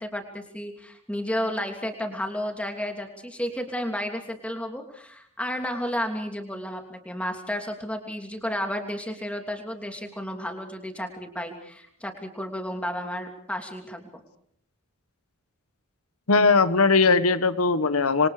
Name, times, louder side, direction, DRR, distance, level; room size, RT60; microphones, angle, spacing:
voice 1, 0.0-14.1, equal, 5° left, 4 dB, 2.9 m, -32 dB
voice 2, 16.3-18.3, left 4 dB, 80° left, 13 dB, 1.4 m, -19 dB
27.0 x 24.0 x 5.0 m, 0.65 s
head